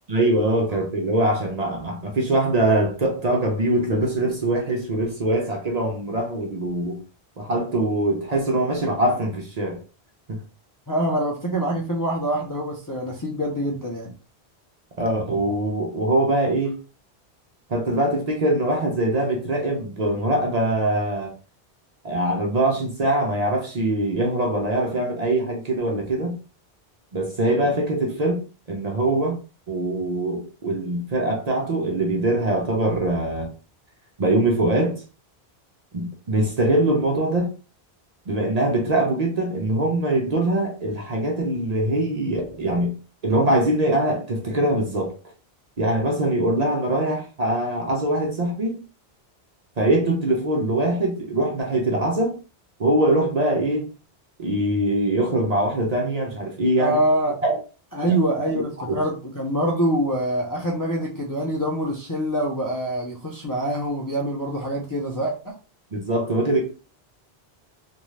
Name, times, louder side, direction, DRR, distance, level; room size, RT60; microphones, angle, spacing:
voice 1, 0.1-7.0 7.4-9.8 10.3-10.4 15.0-16.8 17.7-21.3 22.0-26.4 27.1-29.4 29.7-33.5 34.2-35.0 35.9-37.5 38.3-42.9 43.2-45.1 45.8-48.8 49.8-52.3 52.8-53.9 54.4-57.0 57.4-57.6 58.1-58.2 58.5-59.0 65.9-66.6, right 1 dB, 45° right, 0.6 m, -23 dB
voice 2, 10.9-14.1 56.8-57.4 57.9-65.5, right 1 dB, 30° left, 0.4 m, -25 dB
2.6 x 2.2 x 3.1 m
omnidirectional pair, 1.1 m